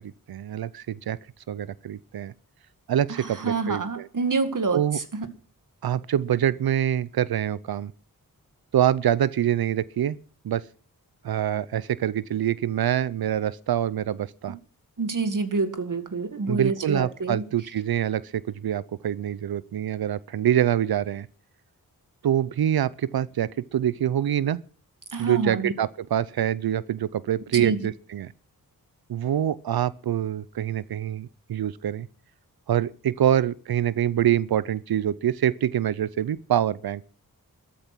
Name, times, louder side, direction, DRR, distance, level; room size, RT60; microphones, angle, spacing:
voice 1, 0.3-1.2 1.5-2.3 2.9-4.1 4.7-5.0 5.8-7.9 8.7-10.2 10.4-10.6 11.2-14.6 16.5-21.3 22.2-24.6 25.2-28.3 29.1-32.1 32.7-37.0, right 10 dB, 80° right, 0.6 m, -25 dB
voice 2, 3.1-5.3 15.0-17.5 25.1-25.7 27.5-27.8, right 4 dB, 60° right, 2.1 m, -27 dB
14.0 x 12.5 x 6.1 m
wide cardioid pair, 70°, 36 cm